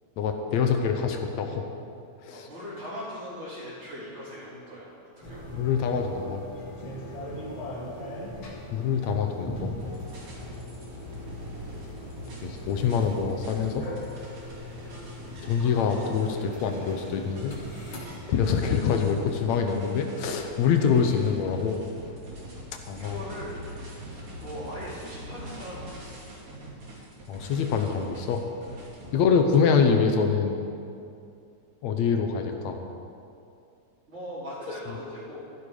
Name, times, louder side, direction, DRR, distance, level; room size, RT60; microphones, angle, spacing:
voice 1, 0.2-1.7 2.2-2.5 5.6-6.5 8.7-9.7 12.4-13.9 15.4-17.5 18.3-21.8 22.9-23.2 27.3-28.4 29.1-30.6 31.8-32.8, left 6 dB, 75° left, 4 dB, 2.1 m, -25 dB
voice 2, 2.3-4.9 5.2-5.6 7.2-7.4 14.7-15.0 22.4-26.2 34.1-35.4, equal, 25° right, -11 dB, 2.7 m, -40 dB
sound 1, 5.2-18.2, equal, 45° left, 2.7 m, -40 dB
sound 2, 9.8-29.1, equal, 60° right, 4.1 m, -43 dB
14.0 x 12.0 x 4.9 m, 2.5 s
omnidirectional pair, 3.3 m